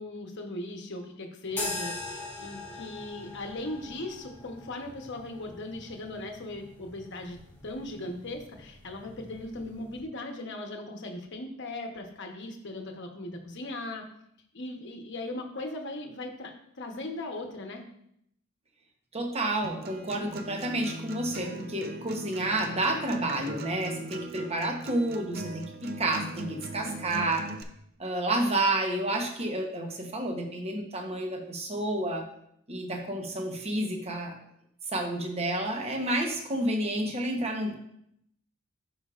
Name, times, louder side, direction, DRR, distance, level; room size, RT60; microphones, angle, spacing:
voice 1, 0.0-14.1 14.5-17.8, left 2 dB, 55° left, 3 dB, 1.0 m, -38 dB
sound 1, 1.5-10.0, left 2 dB, 10° left, 1.4 m, -42 dB
voice 2, 19.1-27.5 28.0-32.2 32.7-34.4 34.9-37.7, right 1 dB, 30° right, 2 dB, 1.0 m, -30 dB
Acoustic guitar, 19.6-27.6, right 2 dB, 45° right, 0.5 m, -40 dB
11.5 x 4.8 x 2.5 m, 0.73 s
head